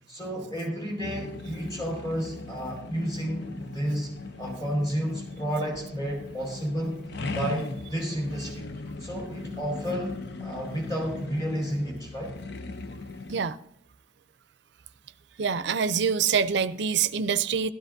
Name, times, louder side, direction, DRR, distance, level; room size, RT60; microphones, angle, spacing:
voice 1, 0.1-4.1 4.4-7.0 7.3-8.7 9.0-12.3, equal, 20° left, -3 dB, 4.7 m, -31 dB
sound 1, 1.0-13.4, left 3 dB, 65° left, 0.6 m, -39 dB
voice 2, 15.4-17.7, right 6 dB, 65° right, 14 dB, 0.5 m, -25 dB
15.5 x 12.5 x 2.6 m, 0.72 s
head